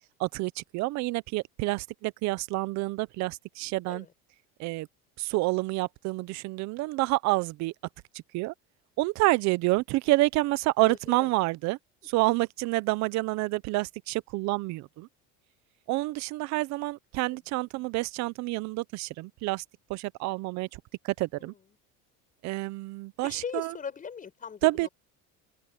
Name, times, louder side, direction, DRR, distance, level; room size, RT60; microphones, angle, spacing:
voice 1, 0.2-4.0 4.6-4.9 5.2-7.7 8.3-8.5 9.0-11.8 12.1-15.1 15.9-19.6 19.9-20.7 21.2-21.5 22.4-23.7 24.6-24.9, right 21 dB, 55° right, 0.7 m, -28 dB
voice 2, 10.8-11.3 17.3-17.4 21.4-21.6 23.2-24.9, left 6 dB, 25° left, 7.3 m, -40 dB
open air
cardioid pair, 145°, 34 cm